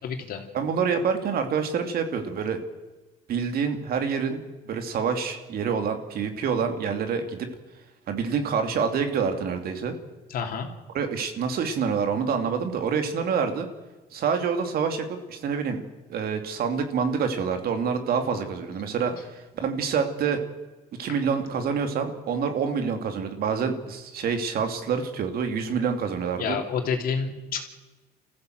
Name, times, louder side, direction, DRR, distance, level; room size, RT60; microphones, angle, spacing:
voice 1, 0.0-0.4 10.3-10.7 26.4-27.6, left 6 dB, 60° left, 4 dB, 3.1 m, -29 dB
voice 2, 0.5-2.6 3.3-7.5 8.1-10.0 10.9-13.7 14.1-15.8 16.1-20.4 21.0-26.6, right 6 dB, 65° right, 6 dB, 2.7 m, -27 dB
28.5 x 15.0 x 7.9 m, 1.2 s
cardioid pair, 110°, 17 cm